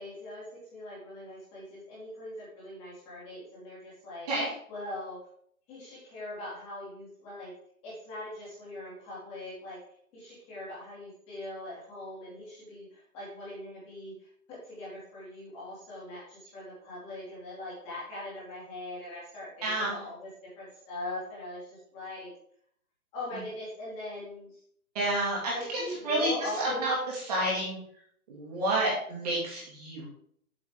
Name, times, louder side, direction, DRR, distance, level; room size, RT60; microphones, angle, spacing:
voice 1, 0.0-4.3 4.7-5.2 5.7-7.5 7.8-9.8 10.1-22.3 23.1-24.5 25.5-26.9, left 1 dB, 15° left, -7 dB, 2.6 m, -41 dB
voice 2, 19.6-20.0 24.9-27.0 27.3-27.8 28.3-30.1, right 1 dB, 25° right, -4 dB, 2.3 m, -30 dB
7.7 x 7.1 x 3.7 m, 0.64 s
hypercardioid pair, 165°, 43 cm